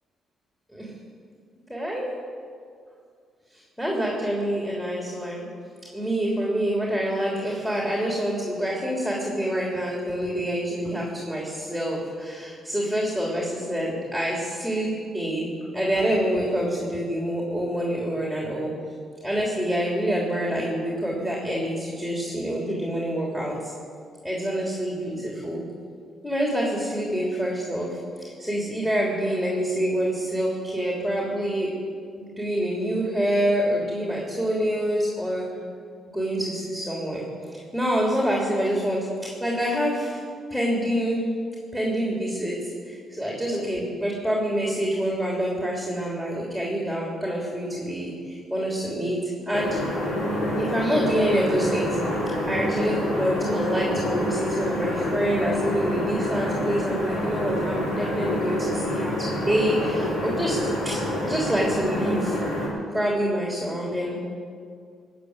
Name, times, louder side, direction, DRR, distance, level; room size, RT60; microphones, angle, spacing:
voice 1, 1.7-2.1 3.5-5.5 5.9-18.7 19.2-23.7 24.2-25.6 26.2-31.7 32.4-35.4 36.1-40.2 40.5-41.2 41.7-49.8 50.6-52.0 52.5-60.6 60.8-62.4 62.9-64.2, equal, 5° left, -3 dB, 3.3 m, -26 dB
sound 1, 49.5-62.7, left 1 dB, 90° left, 5.0 m, -27 dB
18.5 x 7.2 x 9.7 m, 2.2 s
cardioid pair, 90°, 0 cm